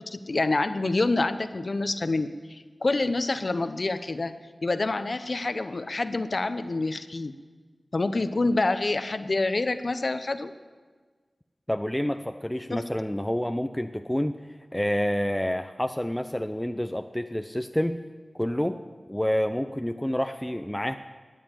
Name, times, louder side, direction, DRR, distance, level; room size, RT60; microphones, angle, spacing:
voice 1, 0.0-4.3 4.6-7.3 7.9-10.5 12.7-12.8, left 2 dB, 60° left, 10 dB, 0.8 m, -27 dB
voice 2, 11.7-14.4 14.7-18.0 18.4-18.8 19.1-21.0, equal, 10° left, 7 dB, 0.6 m, -28 dB
13.5 x 9.4 x 9.2 m, 1.4 s
wide cardioid pair, 50°, 0 cm